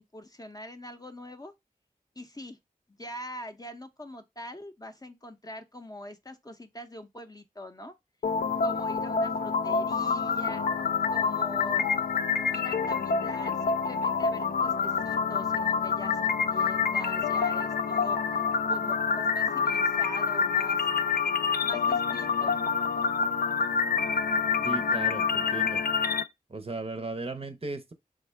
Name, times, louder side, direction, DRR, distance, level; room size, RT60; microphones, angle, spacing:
voice 1, 0.0-1.5 2.2-2.6 2.9-7.9 8.6-10.6 11.1-11.9 12.5-18.4 18.7-20.9 21.6-22.6, left 1 dB, 25° left, 0.6 m, -43 dB
sound 1, 8.2-26.2, left 5 dB, 75° left, 0.4 m, -27 dB
voice 2, 24.6-25.8 26.5-27.9, right 3 dB, 40° right, 0.6 m, -36 dB
3.5 x 2.1 x 3.2 m
cardioid pair, 45°, 15 cm